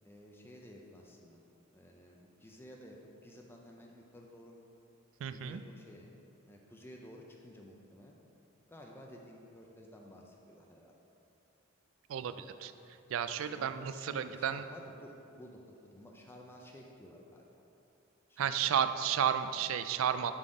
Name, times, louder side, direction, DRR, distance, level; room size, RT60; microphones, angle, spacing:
voice 1, 0.0-1.4 1.7-4.6 5.3-6.1 6.4-8.2 8.7-10.9 12.2-12.4 13.3-17.5 18.3-18.7, equal, 10° left, 0 dB, 0.5 m, -53 dB
voice 2, 5.2-5.6 12.1-14.7 18.4-20.3, right 8 dB, 70° right, 11 dB, 0.3 m, -33 dB
7.6 x 3.9 x 4.8 m, 2.7 s
head